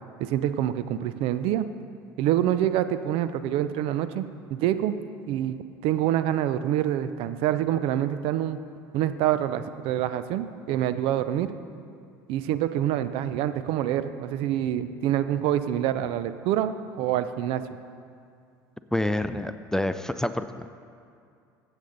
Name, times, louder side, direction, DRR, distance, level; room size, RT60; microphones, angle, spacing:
voice 1, 0.2-1.7 2.2-4.2 4.5-5.0 5.3-8.6 8.9-11.5 12.3-17.6, right 11 dB, 60° right, 12 dB, 0.6 m, -26 dB
voice 2, 18.9-20.7, left 1 dB, 5° left, 11 dB, 0.5 m, -27 dB
15.5 x 8.1 x 4.0 m, 2.4 s
hypercardioid pair, 75°, 11 cm